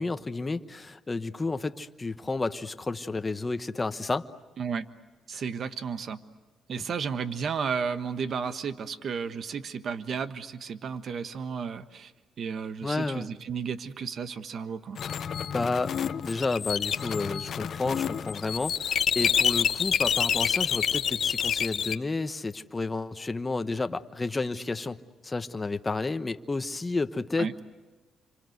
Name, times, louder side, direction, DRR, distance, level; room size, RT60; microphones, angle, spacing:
voice 1, 0.0-4.3 5.3-5.4 12.8-13.3 15.5-15.9 16.2-25.0 25.2-27.6, left 3 dB, 20° left, 9 dB, 1.1 m, -31 dB
voice 2, 5.3-6.2 6.7-12.1 12.4-15.0 27.4-27.5, right 6 dB, 55° right, 11 dB, 1.3 m, -33 dB
sound 1, 15.0-21.9, left 8 dB, 60° left, 1.0 m, -28 dB
28.5 x 25.5 x 8.0 m, 1.2 s
cardioid pair, 95°, 0 cm